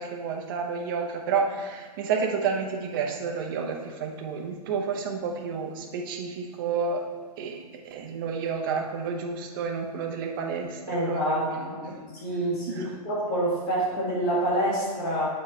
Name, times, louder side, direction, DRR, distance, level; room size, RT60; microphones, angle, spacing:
voice 1, 0.0-7.0 7.4-11.6 11.9-12.0 12.7-12.9, right 5 dB, 35° right, 2 dB, 0.8 m, -30 dB
voice 2, 10.9-15.3, right 1 dB, 30° left, -5 dB, 2.0 m, -27 dB
7.1 x 4.1 x 4.3 m, 1.5 s
hypercardioid pair, 165°, 21 cm